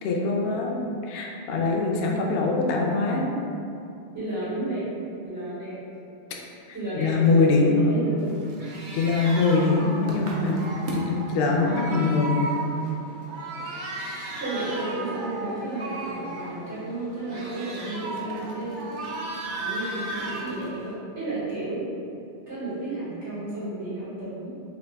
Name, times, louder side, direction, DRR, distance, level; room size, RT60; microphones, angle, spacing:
voice 1, 0.0-0.8 1.0-3.3 6.9-7.8 8.9-10.6 10.9-12.4, left 3 dB, 65° left, -1 dB, 0.7 m, -23 dB
voice 2, 4.1-4.9 5.2-5.8 6.7-8.3 14.4-18.9 19.6-21.8 22.5-24.5, right 2 dB, 85° right, -12 dB, 2.0 m, -32 dB
sound 1, 8.2-20.9, right 2 dB, 55° right, 0.6 m, -35 dB
4.0 x 2.5 x 3.3 m, 2.6 s
omnidirectional pair, 1.2 m